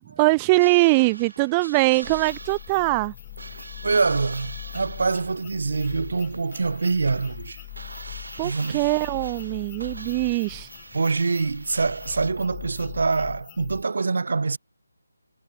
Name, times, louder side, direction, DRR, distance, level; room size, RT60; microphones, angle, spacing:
voice 1, 0.2-3.1 8.4-10.7, right 25 dB, 15° right, 0.5 m, -22 dB
sound 1, 0.6-12.3, right 2 dB, 75° right, 1.8 m, -43 dB
sound 2, 2.0-13.8, left 18 dB, 20° left, 1.8 m, -41 dB
voice 2, 3.8-7.6 8.4-8.8 10.9-14.6, right 4 dB, 60° right, 0.9 m, -25 dB
figure-of-eight pair, 165°, 0 cm